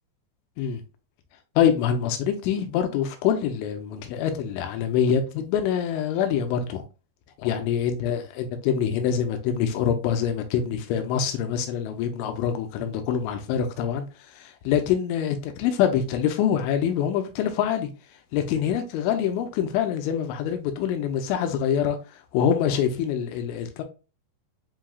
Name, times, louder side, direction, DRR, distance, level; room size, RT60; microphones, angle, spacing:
voice 1, 1.6-6.8 7.4-14.1 14.4-17.9 18.3-22.0 22.3-23.8, left 8 dB, 85° left, 3.1 m, -25 dB
7.2 x 2.8 x 2.3 m
omnidirectional pair, 5.3 m